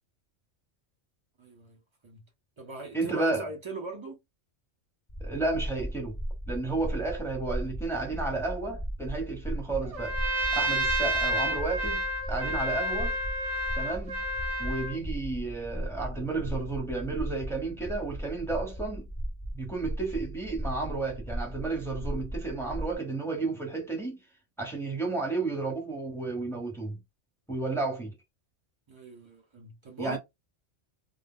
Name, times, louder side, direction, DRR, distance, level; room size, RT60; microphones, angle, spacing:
voice 1, 1.4-2.2 2.6-4.2 28.9-30.2, right 3 dB, 25° right, 0.8 m, -40 dB
voice 2, 2.9-3.5 5.2-6.1 6.5-10.2 10.5-13.2 13.7-14.2 14.6-19.1 19.5-24.2 24.6-27.0 27.5-28.1 30.0-30.2, right 3 dB, ahead, 0.8 m, -32 dB
sound 1, 5.1-22.9, equal, 30° left, 0.3 m, -37 dB
Trumpet, 9.9-15.0, right 1 dB, 50° right, 0.4 m, -30 dB
2.2 x 2.1 x 3.6 m
omnidirectional pair, 1.2 m